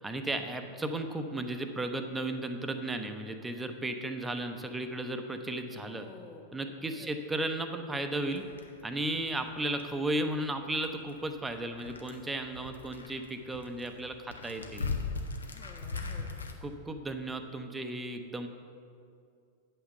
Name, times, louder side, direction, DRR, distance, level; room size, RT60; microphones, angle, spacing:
voice 1, 0.0-6.1 6.5-8.4 8.8-14.9 16.6-18.5, right 1 dB, 10° right, 7 dB, 0.7 m, -35 dB
voice 2, 5.7-6.4 6.9-7.1 12.6-12.7 15.5-16.4, left 4 dB, 25° left, 1 dB, 1.1 m, -51 dB
sound 1, 8.2-16.5, left 4 dB, 75° left, 0.8 m, -41 dB
8.5 x 5.8 x 7.6 m, 2.4 s
figure-of-eight pair, 90°, 0 cm